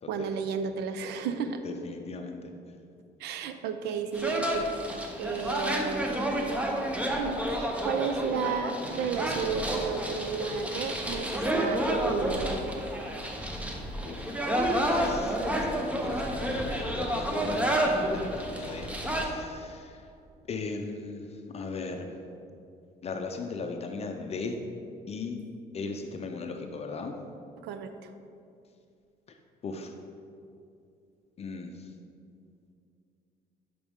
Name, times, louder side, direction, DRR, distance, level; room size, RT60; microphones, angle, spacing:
voice 1, 0.1-1.6 3.2-6.7 7.2-12.8 27.6-28.1, right 6 dB, 80° right, 9 dB, 0.6 m, -33 dB
voice 2, 1.6-2.5 14.0-14.2 14.9-18.9 19.2-20.0 20.5-21.3 21.5-22.1 23.0-24.6 25.1-25.4 25.7-27.2 29.6-29.9 31.4-31.7, left 4 dB, 40° left, 4 dB, 0.6 m, -37 dB
sound 1, 4.1-19.3, right 1 dB, 10° right, 0.9 m, -30 dB
10.5 x 5.1 x 3.6 m, 2.5 s
cardioid pair, 110°, 17 cm